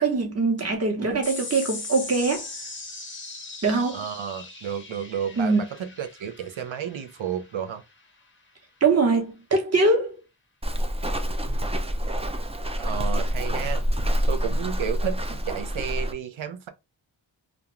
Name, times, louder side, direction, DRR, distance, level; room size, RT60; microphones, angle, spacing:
voice 1, 0.0-2.5 3.6-4.0 5.4-5.6 8.8-10.2, right 3 dB, 35° right, 0.8 m, -22 dB
sound 1, 1.2-8.0, left 3 dB, 25° left, 0.7 m, -39 dB
voice 2, 3.9-7.8 12.8-13.8 14.3-15.2 15.5-16.7, right 8 dB, 90° right, 0.6 m, -32 dB
Walk footsteps, 10.6-16.1, equal, 15° right, 0.4 m, -27 dB
2.5 x 2.2 x 2.9 m
wide cardioid pair, 55°, 46 cm